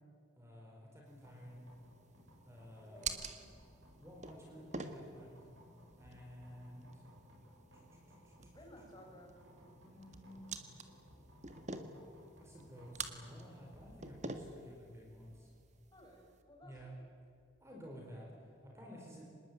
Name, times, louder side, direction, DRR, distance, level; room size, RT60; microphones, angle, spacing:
voice 1, 0.4-1.6 2.4-3.2 4.0-5.4 6.0-7.0 7.9-8.0 8.2-8.5 9.8-10.6 12.4-15.5 16.6-16.9 17.6-19.2, equal, 15° right, -1 dB, 4.5 m, -53 dB
sound 1, 1.1-16.4, right 4 dB, 35° right, 1.8 m, -49 dB
sound 2, 1.2-18.4, equal, 75° right, 7.9 m, -62 dB
voice 2, 2.8-3.4 8.5-9.3 15.9-17.1 18.8-18.9, equal, 20° left, -1 dB, 6.4 m, -58 dB
26.0 x 20.5 x 9.3 m, 2.4 s
head